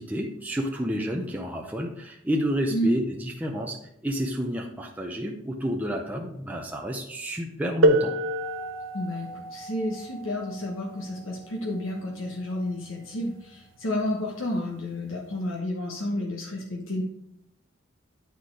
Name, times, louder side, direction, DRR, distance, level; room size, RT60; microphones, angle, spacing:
voice 1, 0.0-8.2, equal, 10° right, 0 dB, 0.6 m, -30 dB
sound 1, 7.8-13.3 14.3-14.4 15.2-15.4, right 1 dB, 70° right, 0.9 m, -28 dB
voice 2, 8.9-17.0, left 1 dB, 80° left, -1 dB, 1.2 m, -31 dB
9.4 x 4.3 x 4.8 m, 0.77 s
head